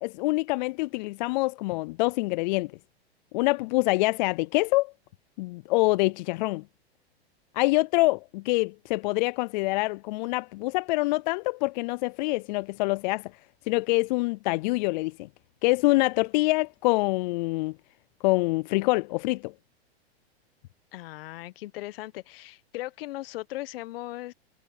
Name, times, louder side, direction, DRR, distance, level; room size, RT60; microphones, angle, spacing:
voice 1, 0.0-2.7 3.3-4.9 5.4-6.6 7.5-13.3 13.7-15.3 15.6-17.7 18.2-19.5, left 23 dB, 45° left, 0.4 m, -25 dB
voice 2, 20.9-24.3, left 17 dB, 60° left, 1.2 m, -38 dB
hypercardioid pair, 115°, 32 cm